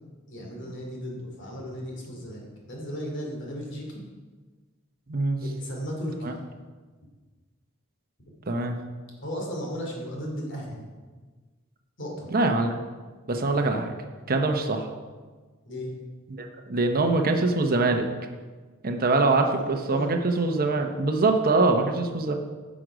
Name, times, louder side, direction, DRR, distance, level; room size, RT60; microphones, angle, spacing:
voice 1, 0.3-4.0 5.4-6.3 9.2-10.8 12.0-12.3 15.7-15.9 19.9-20.1, equal, 55° left, -1 dB, 2.7 m, -35 dB
voice 2, 5.1-5.4 6.2-6.3 8.5-8.8 12.3-12.7 13.3-13.9 14.3-14.9 16.3-18.1 18.8-22.4, right 3 dB, 40° right, 4 dB, 0.8 m, -23 dB
11.0 x 6.3 x 5.0 m, 1.4 s
head